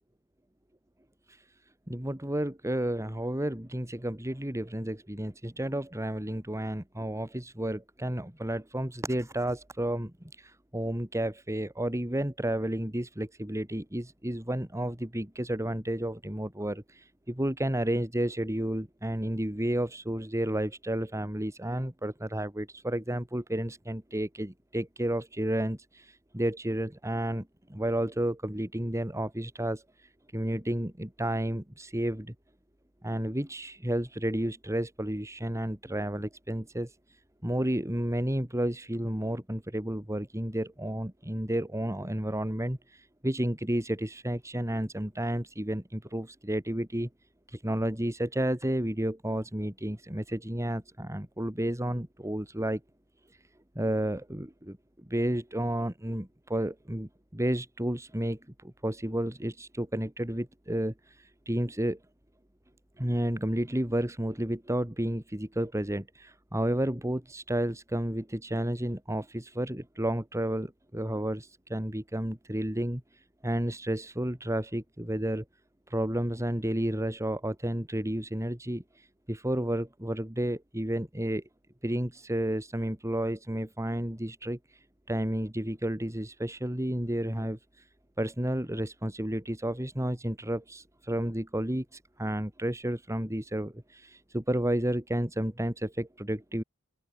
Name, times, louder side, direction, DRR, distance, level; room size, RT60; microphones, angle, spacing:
voice 1, 1.9-29.8 30.3-32.3 33.0-36.9 37.4-47.1 47.5-52.8 53.8-62.0 63.0-73.0 73.4-75.4 75.9-78.8 79.3-81.4 81.8-84.6 85.1-87.6 88.2-96.6, right 1 dB, 15° right, 2.4 m, -31 dB
open air
head